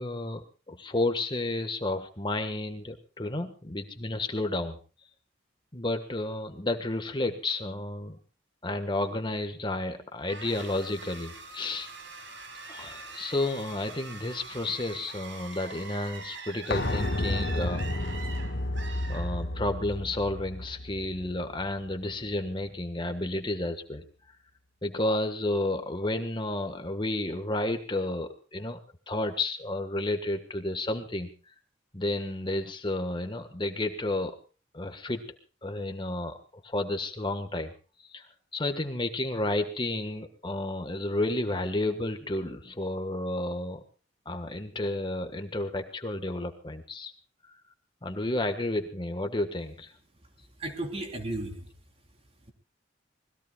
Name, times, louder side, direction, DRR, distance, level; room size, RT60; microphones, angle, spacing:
voice 1, 0.0-4.8 5.7-8.2 8.6-11.9 12.7-18.3 19.1-24.4 24.8-28.8 29.1-31.5 31.9-34.4 34.7-35.2 35.6-36.4 36.6-37.7 38.0-43.8 44.2-47.1 47.5-47.6 48.0-49.9, left 2 dB, 25° left, 7 dB, 1.5 m, -31 dB
sound 1, 10.3-19.8, right 4 dB, 70° right, 5.3 m, -44 dB
sound 2, 16.7-22.3 22.6-22.7, left 1 dB, 60° left, 1.6 m, -32 dB
voice 2, 50.4-51.7 52.5-52.6, right 1 dB, 30° right, 4 dB, 3.7 m, -35 dB
26.5 x 20.5 x 2.4 m, 0.37 s
head